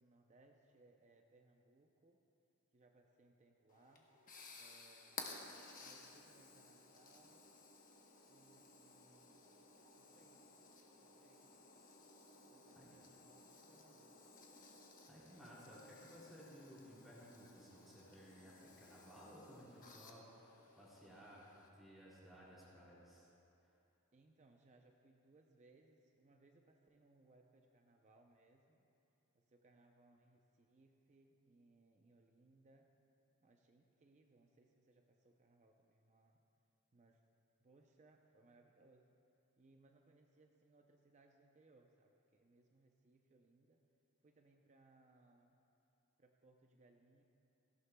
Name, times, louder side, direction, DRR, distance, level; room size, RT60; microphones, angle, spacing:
voice 1, 0.0-2.2 2.7-4.1 4.5-5.5 5.8-7.5 8.3-9.5 10.0-10.5 11.0-11.5 12.5-14.1 24.1-28.9 29.3-32.9 33.4-36.4 36.9-37.2 37.6-39.2 39.6-43.8 44.2-45.6 46.2-47.2, right 2 dB, 30° right, 2 dB, 0.6 m, -69 dB
sound 1, 3.7-21.7, left 3 dB, 40° left, 1.1 m, -57 dB
voice 2, 15.1-23.3, equal, ahead, -8 dB, 2.7 m, -58 dB
17.5 x 15.5 x 2.3 m, 2.8 s
head